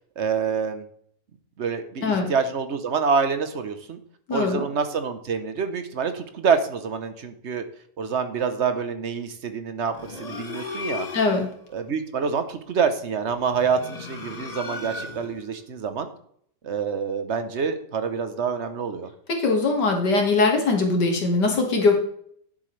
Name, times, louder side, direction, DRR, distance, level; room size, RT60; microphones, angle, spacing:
voice 1, 0.2-0.9 1.6-4.0 4.3-7.6 8.0-11.1 11.7-16.1 16.6-19.1, right 6 dB, 50° right, 9 dB, 1.0 m, -26 dB
voice 2, 4.3-4.6 11.1-11.5 19.3-22.0, left 3 dB, 70° left, 2 dB, 2.5 m, -21 dB
sound 1, 9.9-11.5 13.4-15.4, left 3 dB, 30° left, 0.9 m, -35 dB
10.0 x 7.8 x 3.3 m, 0.65 s
omnidirectional pair, 1.9 m